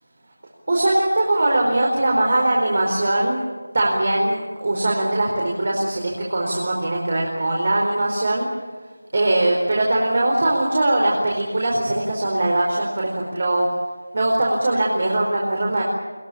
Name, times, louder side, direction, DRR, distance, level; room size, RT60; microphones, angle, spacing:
voice 1, 0.7-3.4 3.7-8.5 9.1-13.7 14.1-15.8, right 1 dB, 45° right, -2 dB, 4.6 m, -21 dB
23.0 x 22.0 x 8.7 m, 1.3 s
figure-of-eight pair, 170°, 0 cm